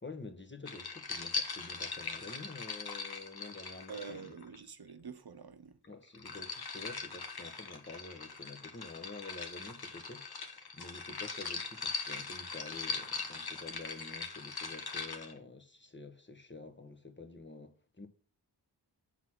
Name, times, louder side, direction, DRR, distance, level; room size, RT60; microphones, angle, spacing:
voice 1, 0.0-4.3 5.9-18.1, left 3 dB, 25° left, 1.3 m, -48 dB
sound 1, 0.7-4.6 5.8-15.3, left 4 dB, 60° left, 1.2 m, -41 dB
voice 2, 3.9-5.8, right 5 dB, 65° right, 0.9 m, -46 dB
7.9 x 4.0 x 6.1 m
wide cardioid pair, 55°, 42 cm